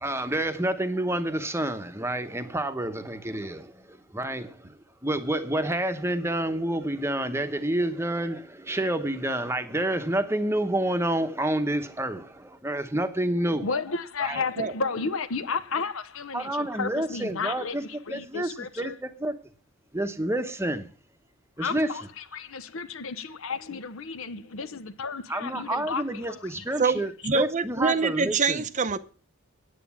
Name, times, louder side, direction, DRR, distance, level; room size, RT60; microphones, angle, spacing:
voice 1, 0.0-4.8 5.0-13.7 14.2-14.4 16.3-17.8 18.1-19.4 19.9-20.9 21.6-21.9 25.3-28.6, right 1 dB, 10° right, 1.0 m, -29 dB
voice 2, 13.6-18.9 21.6-26.7, left 4 dB, 60° left, 0.8 m, -33 dB
voice 3, 26.8-29.0, right 4 dB, 35° right, 0.6 m, -25 dB
9.4 x 9.2 x 7.2 m
head